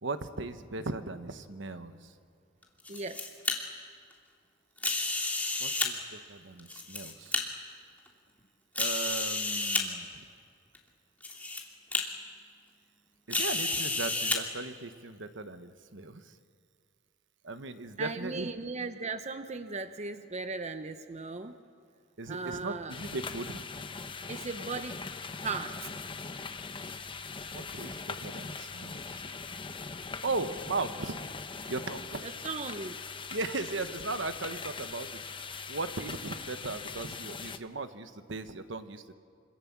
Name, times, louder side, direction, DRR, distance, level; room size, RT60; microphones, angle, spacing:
voice 1, 0.0-2.1 5.6-7.4 8.8-10.3 13.3-16.3 17.4-18.5 22.2-23.6 27.4-29.3 30.0-31.2 31.7-32.3 33.3-35.2 35.7-39.1, right 3 dB, 65° right, 10 dB, 1.2 m, -37 dB
sound 1, 2.6-3.5 4.8-5.9 6.6-7.4 8.1-8.2 8.8-9.8 10.7-10.8 11.2-11.6 11.9-12.0 13.3-14.4, left 3 dB, 10° left, 2.7 m, -30 dB
voice 2, 2.9-3.2 18.0-21.6 22.3-22.9 24.3-25.0 25.4-25.8 32.2-33.0, right 4 dB, 35° right, 9 dB, 0.8 m, -37 dB
sound 2, 22.9-37.6, left 4 dB, 25° left, 0.8 m, -41 dB
26.5 x 26.0 x 7.4 m, 2.3 s
head